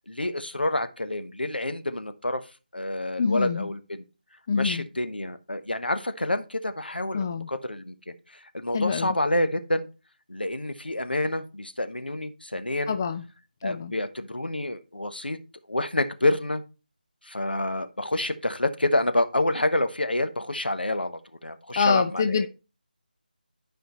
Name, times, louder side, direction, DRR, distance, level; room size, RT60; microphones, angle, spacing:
voice 1, 0.1-2.5 2.7-4.0 4.5-9.9 10.3-13.0 13.6-15.4 15.7-16.6 17.2-22.5, left 1 dB, 85° left, 1.1 m, -28 dB
voice 2, 3.2-3.7 4.5-4.9 7.1-7.5 8.7-9.2 12.9-13.2 13.6-13.9 21.8-22.5, left 5 dB, 20° left, 0.4 m, -25 dB
11.5 x 5.0 x 3.1 m
figure-of-eight pair, 160°, 5 cm